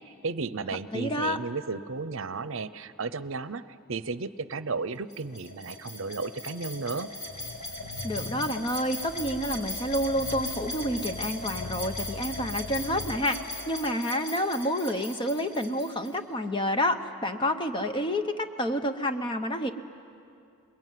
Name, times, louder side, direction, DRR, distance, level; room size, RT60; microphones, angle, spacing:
voice 1, 0.1-7.1, right 4 dB, 65° right, 14 dB, 0.7 m, -34 dB
voice 2, 0.9-1.4 8.0-19.7, equal, 20° left, 7 dB, 0.8 m, -29 dB
sound 1, 5.1-16.1, left 1 dB, 45° left, 5.7 m, -38 dB
sound 2, 7.2-13.3, left 2 dB, 75° left, 1.2 m, -42 dB
27.5 x 22.0 x 9.3 m, 2.5 s
head